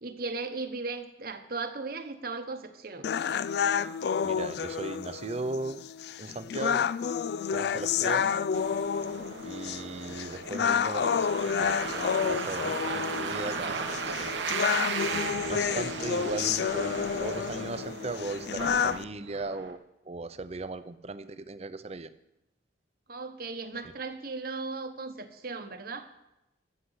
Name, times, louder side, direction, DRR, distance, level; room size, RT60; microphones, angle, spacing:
voice 1, 0.0-3.1 23.1-26.1, right 3 dB, 55° right, 8 dB, 1.1 m, -37 dB
sound 1, 3.0-19.0, left 7 dB, 60° left, 0.3 m, -30 dB
voice 2, 4.2-5.8 6.2-6.9 7.5-8.4 9.4-14.3 15.0-19.8 20.0-22.1 23.8-23.9, right 2 dB, 35° right, 13 dB, 0.6 m, -37 dB
sound 2, 8.5-19.7, right 4 dB, 80° right, 1.1 m, -36 dB
13.5 x 6.7 x 8.1 m, 0.90 s
head